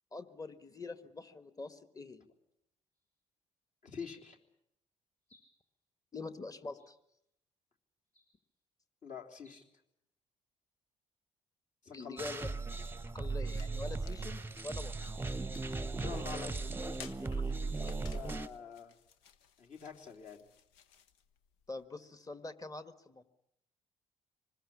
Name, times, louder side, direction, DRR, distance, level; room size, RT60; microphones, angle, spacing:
voice 1, 0.1-2.3 6.1-7.0 11.9-12.5 13.1-15.0 16.0-16.5 21.7-23.2, left 3 dB, 20° left, 11 dB, 1.7 m, -45 dB
sound 1, 2.9-3.2 3.9-4.5 5.2-5.8 6.7-7.3 8.0-8.6 9.3-9.6, left 1 dB, 85° left, 8.0 m, -71 dB
voice 2, 3.8-4.4 9.0-9.6 11.8-12.4 15.9-17.2 17.5-18.9 19.6-20.4, left 6 dB, 45° left, 2 dB, 3.3 m, -47 dB
sound 2, 12.2-18.5, right 3 dB, 15° right, 1.0 m, -37 dB
sound 3, 13.1-21.9, left 8 dB, 65° left, 1.1 m, -58 dB
26.0 x 20.5 x 8.6 m, 0.79 s
figure-of-eight pair, 45°, 17 cm